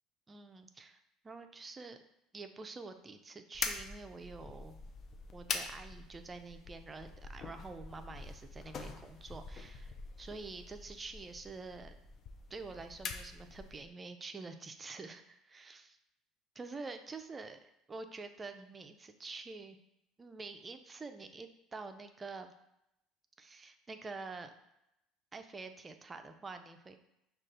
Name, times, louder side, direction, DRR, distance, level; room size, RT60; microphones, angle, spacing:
voice 1, 0.3-1.0 1.2-2.0 2.3-4.8 5.3-11.9 12.5-16.0 16.6-17.6 17.9-19.8 20.2-22.5 23.4-24.5 25.3-27.0, right 3 dB, 25° right, 7 dB, 0.4 m, -47 dB
sound 1, 3.5-13.9, left 4 dB, 45° left, 0.5 m, -44 dB
5.2 x 2.4 x 3.8 m, 0.84 s
hypercardioid pair, 70°, 0 cm